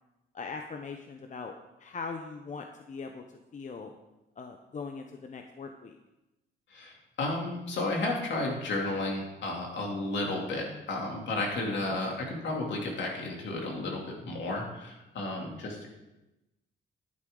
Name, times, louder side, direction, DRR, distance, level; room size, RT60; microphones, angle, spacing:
voice 1, 0.3-3.2 3.5-3.9 4.4-6.0 11.7-12.0, left 4 dB, 40° left, 5 dB, 0.8 m, -41 dB
voice 2, 6.7-15.9, left 2 dB, 65° left, -1 dB, 3.0 m, -33 dB
11.0 x 9.7 x 3.9 m, 0.98 s
cardioid pair, 90°, 20 cm